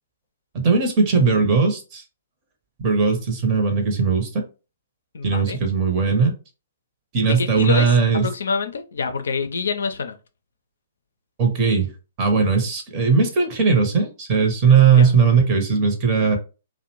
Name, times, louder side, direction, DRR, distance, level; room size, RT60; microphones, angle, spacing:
voice 1, 0.5-2.0 2.8-4.4 5.2-6.3 7.1-8.3 11.4-11.9 12.2-16.4, right 5 dB, 35° right, 0.7 m, -18 dB
voice 2, 5.1-5.6 7.2-10.2 15.0-15.1, left 5 dB, 70° left, 0.4 m, -26 dB
2.5 x 2.0 x 2.9 m
figure-of-eight pair, 120°, 0 cm